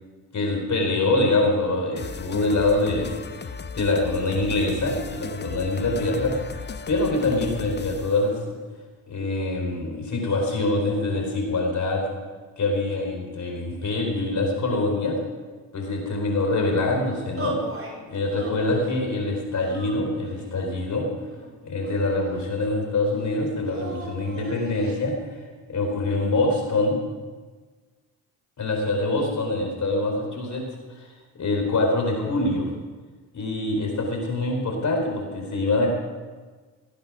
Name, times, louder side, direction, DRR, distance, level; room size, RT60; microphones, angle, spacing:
voice 1, 0.3-3.2 3.7-6.3 6.9-8.6 9.1-12.1 12.6-15.1 15.7-17.6 18.1-21.1 21.6-25.1 25.7-27.0 28.6-30.6 31.0-31.1 31.4-32.7 33.3-35.9, left 2 dB, 45° left, 1 dB, 4.4 m, -24 dB
sound 1, 2.0-8.2, left 5 dB, 25° left, 0.9 m, -36 dB
sound 2, 17.4-17.9 18.3-19.0 19.6-20.5 21.3-22.3 23.6-25.0, right 2 dB, 30° right, 4.3 m, -37 dB
18.0 x 8.7 x 6.3 m, 1.4 s
hypercardioid pair, 50°, 41 cm